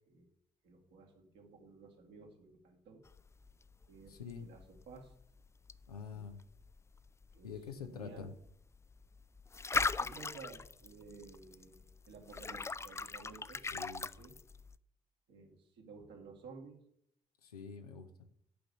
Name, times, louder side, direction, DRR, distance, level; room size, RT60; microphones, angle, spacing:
voice 1, 0.6-3.0 3.9-5.1 6.1-6.2 7.3-7.5 7.9-8.3 9.9-13.6 14.2-14.3 15.3-16.8, right 4 dB, 65° right, 1 dB, 2.1 m, -54 dB
sound 1, 3.0-14.8, left 4 dB, 15° left, 0.4 m, -41 dB
voice 2, 4.1-4.5 5.9-6.4 7.4-8.3 13.7-14.1 17.4-18.3, left 6 dB, 85° left, 7 dB, 0.7 m, -46 dB
10.5 x 5.1 x 6.7 m, 0.71 s
figure-of-eight pair, 40°, 19 cm